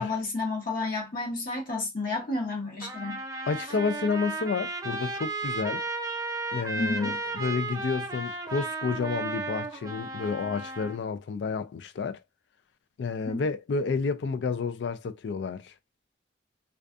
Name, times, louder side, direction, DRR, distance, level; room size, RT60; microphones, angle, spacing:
voice 1, 0.0-3.2 6.8-7.1 13.3-13.4, left 3 dB, 50° left, 0.7 m, -31 dB
Trumpet, 2.8-11.0, right 3 dB, 20° right, 0.4 m, -34 dB
voice 2, 3.5-5.8 6.5-12.2 13.0-15.7, left 5 dB, 65° left, 0.3 m, -30 dB
2.5 x 2.3 x 2.3 m
head